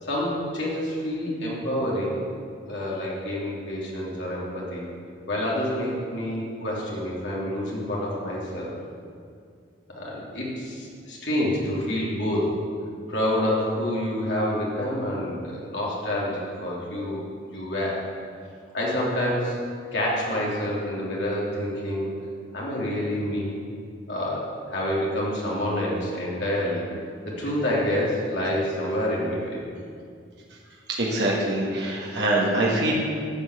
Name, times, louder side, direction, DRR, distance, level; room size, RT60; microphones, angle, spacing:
voice 1, 0.0-2.2 2.7-4.8 5.3-8.7 9.9-12.5 13.1-17.2 17.5-18.0 18.7-19.6 19.9-22.1 22.5-23.6 24.1-26.8 27.2-29.6, left 1 dB, 60° left, -5 dB, 2.9 m, -27 dB
voice 2, 31.0-32.9, right 1 dB, 60° right, -4 dB, 1.8 m, -24 dB
10.5 x 5.7 x 8.1 m, 2.2 s
head